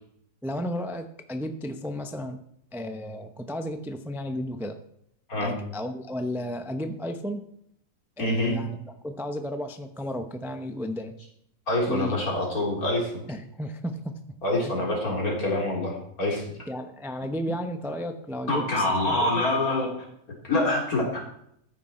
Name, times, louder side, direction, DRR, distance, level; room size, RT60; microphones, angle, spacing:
voice 1, 0.4-2.4 2.7-4.8 5.4-7.4 8.2-8.8 9.0-11.1 11.9-12.2 13.3-14.2 14.6-14.7 16.7-19.4, equal, ahead, 7 dB, 0.6 m, -33 dB
voice 2, 8.2-8.5 11.7-13.1 14.4-16.6 18.5-19.9 20.4-21.2, left 1 dB, 65° left, -2 dB, 4.1 m, -25 dB
14.0 x 9.8 x 4.4 m, 0.72 s
omnidirectional pair, 1.7 m